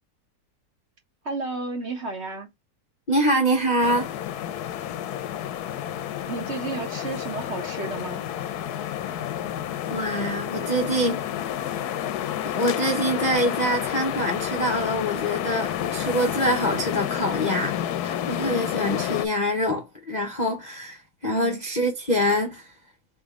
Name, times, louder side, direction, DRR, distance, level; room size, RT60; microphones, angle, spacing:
voice 1, 1.2-2.5 6.2-8.2 21.2-21.6, right 3 dB, 40° right, 1.4 m, -32 dB
voice 2, 3.1-4.1 9.9-11.2 12.4-17.8 18.0-22.7, equal, 40° left, 0.7 m, -25 dB
sound 1, 3.8-19.3, left 11 dB, 70° left, 1.1 m, -30 dB
4.1 x 3.6 x 3.6 m
omnidirectional pair, 1.8 m